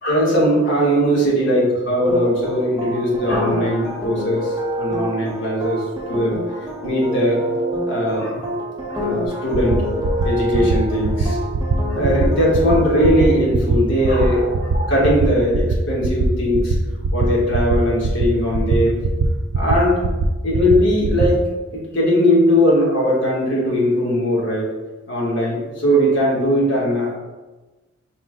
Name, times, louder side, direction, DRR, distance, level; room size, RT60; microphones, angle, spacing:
voice 1, 0.0-6.4 6.8-7.4 7.9-8.4 8.9-9.8 10.2-11.4 11.9-16.7 17.1-19.0 19.5-20.0 20.4-21.4 21.7-24.7 25.1-27.2, equal, 60° left, -5 dB, 1.2 m, -19 dB
sound 1, 2.1-13.4, right 1 dB, 20° right, 0.7 m, -27 dB
sound 2, 9.5-9.8 10.0-10.3 10.5-10.8 11.0-11.3 11.5-11.8 12.0-12.3 12.5-12.8 13.0-13.3 13.5-13.8 14.0-14.3 14.5-14.8 15.0-15.3 15.5-15.8 16.0-16.3 16.5-16.8 17.0-17.3 17.5-17.8 18.0-18.3 18.5-18.8 19.0-19.3 19.5-19.7 20.0-20.3 20.5-20.7 21.0-21.3, right 5 dB, 80° right, 0.4 m, -20 dB
5.1 x 2.1 x 3.7 m, 1.2 s
head